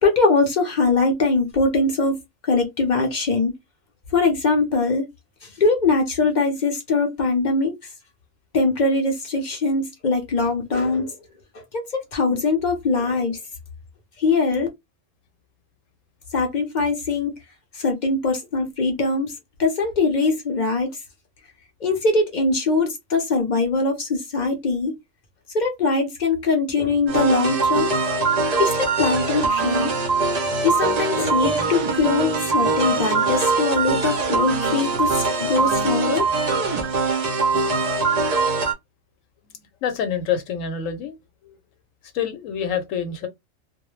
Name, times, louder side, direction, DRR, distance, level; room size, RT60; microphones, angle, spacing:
voice 1, 0.0-3.5 4.1-5.1 5.4-7.7 8.5-11.2 11.5-13.4 14.2-14.7 16.3-17.3 17.7-19.3 19.6-20.9 21.8-25.0 25.5-28.3 28.6-29.9 30.6-36.3, left 3 dB, 55° left, 0.5 m, -22 dB
sound 1, 27.1-38.7, right 4 dB, 55° right, 0.4 m, -22 dB
voice 2, 39.8-41.2 41.4-41.6 42.1-43.3, left 7 dB, 80° left, 1.0 m, -26 dB
2.2 x 2.0 x 3.0 m
omnidirectional pair, 1.3 m